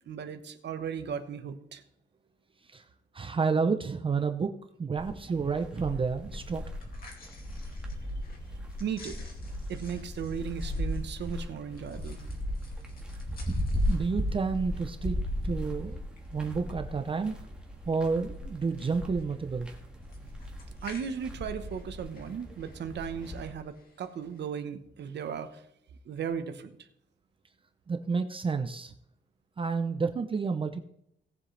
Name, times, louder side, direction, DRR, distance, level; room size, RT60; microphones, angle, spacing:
voice 1, 0.1-1.8 8.8-9.3 9.7-12.2 20.8-25.6 26.0-26.8, right 7 dB, 60° right, 8 dB, 1.1 m, -36 dB
voice 2, 3.1-4.5 4.8-6.6 13.9-15.2 15.4-16.0 16.3-17.3 17.9-19.7 27.9-28.9 29.6-30.8, right 5 dB, 25° right, 7 dB, 0.6 m, -30 dB
sound 1, 5.0-23.5, equal, 5° right, 1.6 m, -36 dB
sound 2, 6.6-24.5, left 2 dB, 50° left, 2.4 m, -53 dB
18.0 x 7.7 x 3.3 m, 0.74 s
wide cardioid pair, 180°, 20 cm